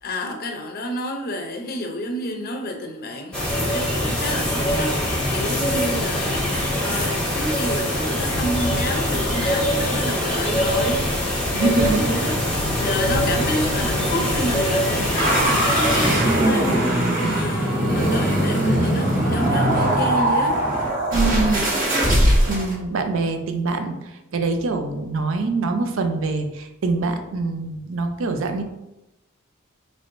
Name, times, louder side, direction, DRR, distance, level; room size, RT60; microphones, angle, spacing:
voice 1, 0.0-20.6, left 1 dB, 45° left, 3 dB, 0.6 m, -30 dB
sound 1, 3.3-16.2, left 1 dB, 5° left, 0.8 m, -23 dB
sound 2, 11.3-20.7 21.0-21.3, right 1 dB, 10° right, 1.2 m, -36 dB
voice 2, 11.5-12.1 21.1-22.0 22.5-28.6, right 3 dB, 60° right, 6 dB, 0.5 m, -24 dB
sound 3, 15.2-22.7, right 1 dB, 40° right, 1.2 m, -20 dB
4.6 x 3.1 x 2.6 m, 0.95 s
head